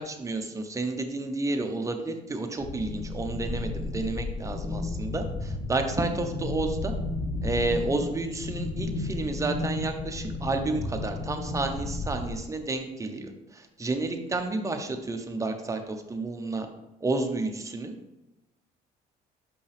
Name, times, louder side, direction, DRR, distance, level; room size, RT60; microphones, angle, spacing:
voice 1, 0.0-6.9 7.4-16.7 17.0-17.9, right 2 dB, 20° right, 5 dB, 0.8 m, -31 dB
sound 1, 2.6-12.3, left 2 dB, 50° left, 1.0 m, -33 dB
5.7 x 5.3 x 3.4 m, 0.97 s
cardioid pair, 110°, 17 cm